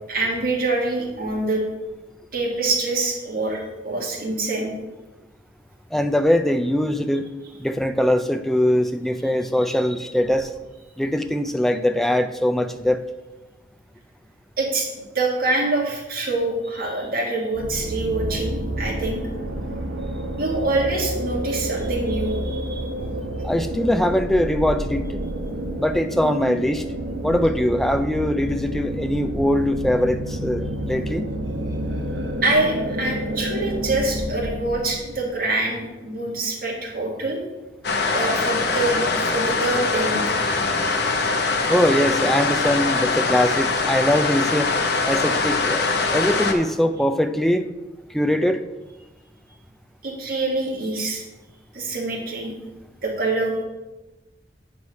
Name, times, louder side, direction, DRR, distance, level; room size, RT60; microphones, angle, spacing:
voice 1, 0.1-1.6 2.3-4.7 14.6-14.9 15.1-19.2 20.4-22.9 32.4-37.4 38.1-40.4 46.1-46.2 50.0-51.2 51.7-52.5 53.0-53.5, right 2 dB, 50° right, -2 dB, 2.0 m, -25 dB
voice 2, 5.9-7.3 7.6-10.5 11.0-13.0 23.4-25.2 25.8-26.8 27.2-31.3 41.7-44.7 45.1-45.8 46.1-47.7 48.1-48.6, left 1 dB, ahead, 7 dB, 0.4 m, -21 dB
sound 1, 17.5-35.0, right 1 dB, 90° right, 1.2 m, -29 dB
sound 2, 37.8-46.5, left 3 dB, 60° left, 0.9 m, -22 dB
8.5 x 4.7 x 5.2 m, 1.1 s
head